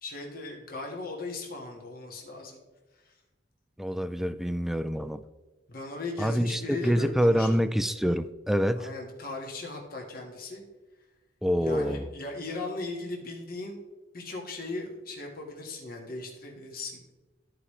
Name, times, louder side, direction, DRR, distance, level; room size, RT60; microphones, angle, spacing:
voice 1, 0.0-2.6 3.0-3.1 5.7-7.5 8.8-10.6 11.6-13.8 14.1-17.1, left 2 dB, 55° left, 1.7 m, -38 dB
voice 2, 3.8-5.2 6.2-8.9 11.4-12.1, equal, ahead, 0.3 m, -26 dB
13.5 x 5.0 x 3.2 m
head